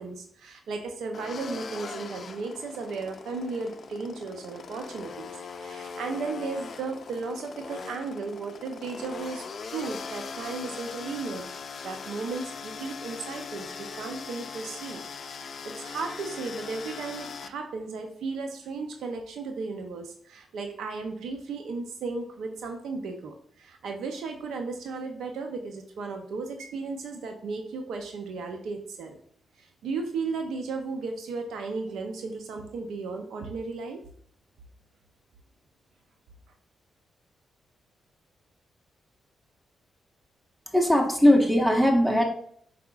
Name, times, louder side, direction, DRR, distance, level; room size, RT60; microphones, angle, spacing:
voice 1, 0.0-11.5 11.8-15.0 15.3-29.2 29.6-34.0, right 4 dB, 80° right, 5 dB, 0.5 m, -35 dB
sound 1, 1.1-17.5, left 5 dB, 55° left, 0.4 m, -40 dB
voice 2, 40.7-42.2, left 1 dB, 10° right, 2 dB, 1.1 m, -20 dB
4.8 x 4.6 x 2.3 m, 0.62 s
supercardioid pair, 55°, 0 cm